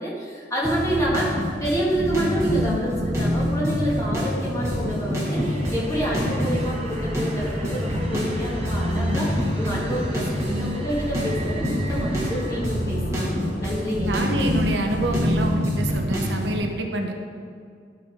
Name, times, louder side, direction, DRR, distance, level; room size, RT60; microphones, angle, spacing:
voice 1, 0.0-1.3 1.6-14.1, equal, 20° left, -6 dB, 2.2 m, -28 dB
sound 1, 0.6-16.6, equal, 15° right, 1.7 m, -26 dB
sound 2, 4.3-15.7, equal, 65° left, 1.0 m, -39 dB
sound 3, 5.2-12.7, right 3 dB, 35° right, 1.0 m, -41 dB
voice 2, 14.0-17.1, right 1 dB, 85° right, 3 dB, 0.9 m, -26 dB
12.5 x 4.5 x 5.1 m, 2.3 s
head